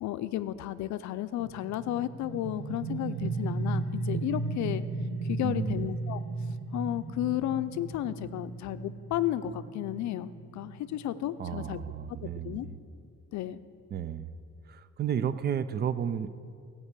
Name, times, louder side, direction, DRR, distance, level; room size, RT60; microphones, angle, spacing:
voice 1, 0.0-4.8 5.2-6.2 6.7-11.8 12.4-12.7 13.3-13.6, left 13 dB, 65° left, 13 dB, 0.5 m, -33 dB
sound 1, 1.4-12.8, right 3 dB, 65° right, 1.6 m, -36 dB
voice 2, 5.4-5.9 11.4-12.6 13.9-14.3 14.7-16.3, right 8 dB, 35° right, 14 dB, 0.4 m, -32 dB
15.5 x 5.4 x 8.3 m, 2.4 s
cardioid pair, 155°, 31 cm